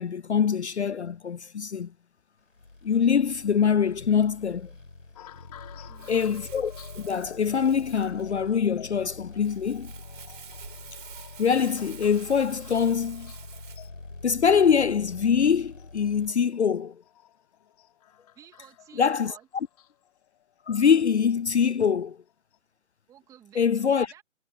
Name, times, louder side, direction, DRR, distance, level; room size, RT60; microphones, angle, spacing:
voice 1, 0.0-1.9 2.8-4.7 6.1-9.9 11.4-13.3 14.2-16.9 19.0-19.3 20.7-22.2 23.6-24.1, left 7 dB, 60° left, 0.5 m, -24 dB
sound 1, 2.5-16.3, left 2 dB, 75° left, 6.4 m, -45 dB
sound 2, 5.2-21.6 22.3-22.6, left 12 dB, 30° left, 6.6 m, -53 dB
voice 2, 5.9-6.3 18.3-19.5 23.1-24.2, right 10 dB, 10° right, 2.9 m, -53 dB
Crumpling crinkling, 6.0-13.9, right 8 dB, 40° right, 4.2 m, -49 dB
figure-of-eight pair, 145°, 39 cm